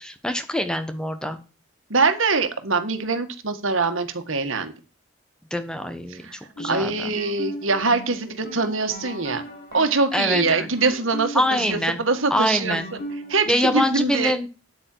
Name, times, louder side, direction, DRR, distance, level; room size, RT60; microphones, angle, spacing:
voice 1, 0.0-1.4 5.5-7.1 10.1-10.7 11.3-12.0 12.3-12.9 13.5-14.5, left 1 dB, 5° left, 8 dB, 1.1 m, -24 dB
voice 2, 1.9-4.7 6.1-6.4 6.7-9.4 9.7-12.8 13.3-14.3, right 4 dB, 80° right, 8 dB, 1.8 m, -23 dB
sound 1, 6.4-13.9, right 1 dB, 55° left, 5.6 m, -37 dB
9.1 x 8.9 x 4.6 m, 0.32 s
head